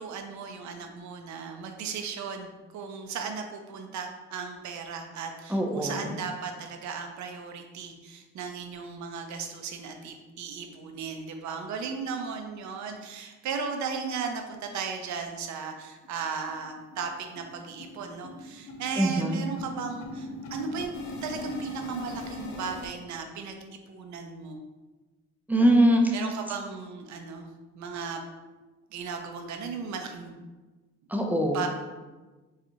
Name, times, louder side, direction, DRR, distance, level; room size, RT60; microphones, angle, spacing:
voice 1, 0.0-2.5 2.7-20.9 21.2-23.6 23.9-24.6 26.1-27.5 27.7-28.2 28.9-30.4 31.5-31.7, right 5 dB, 70° right, 4 dB, 0.6 m, -36 dB
voice 2, 5.5-6.2 19.0-19.4 25.5-26.2 31.1-31.6, right 1 dB, 5° right, 1 dB, 0.4 m, -23 dB
sound 1, 15.6-15.7 16.0-16.1 16.5-16.7 16.9-22.9, left 2 dB, 65° left, 0.6 m, -40 dB
4.2 x 2.4 x 2.7 m, 1.2 s
cardioid pair, 90°, 30 cm